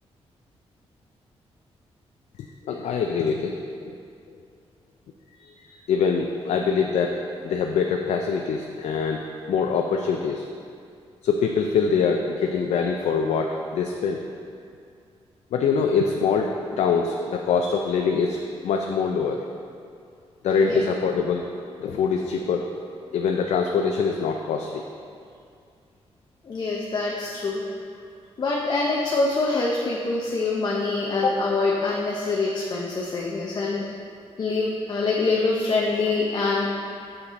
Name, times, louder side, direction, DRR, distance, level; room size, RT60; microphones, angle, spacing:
voice 1, 2.7-3.9 5.9-7.2 7.4-10.4 11.2-14.2 15.5-19.4 20.4-21.4 21.8-22.7 23.1-24.8, left 5 dB, 90° left, 2 dB, 0.4 m, -24 dB
voice 2, 26.4-27.6 28.4-33.8 34.4-36.7, left 3 dB, 40° left, -3 dB, 0.6 m, -25 dB
6.6 x 5.8 x 4.0 m, 2.4 s
wide cardioid pair, 155°, 11 cm